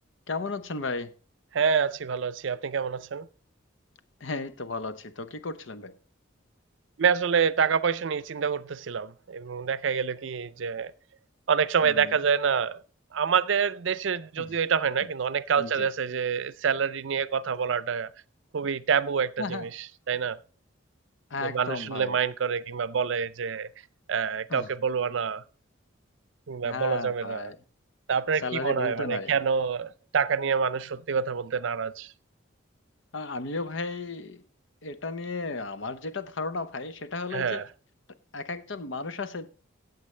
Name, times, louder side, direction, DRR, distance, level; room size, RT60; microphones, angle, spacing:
voice 1, 0.3-1.1 4.2-6.0 11.8-12.1 14.4-14.6 15.6-15.9 19.4-19.7 21.3-22.2 24.5-24.7 26.6-27.6 28.4-29.3 33.1-34.4 34.8-37.6 38.3-39.5, left 3 dB, 70° left, 0.8 m, -34 dB
voice 2, 1.5-3.3 7.0-10.9 11.5-12.8 13.1-18.1 18.5-20.4 21.4-23.7 24.1-25.4 26.5-27.5 28.1-32.1 37.3-37.7, right 6 dB, 70° right, 0.5 m, -27 dB
15.0 x 8.1 x 3.3 m
head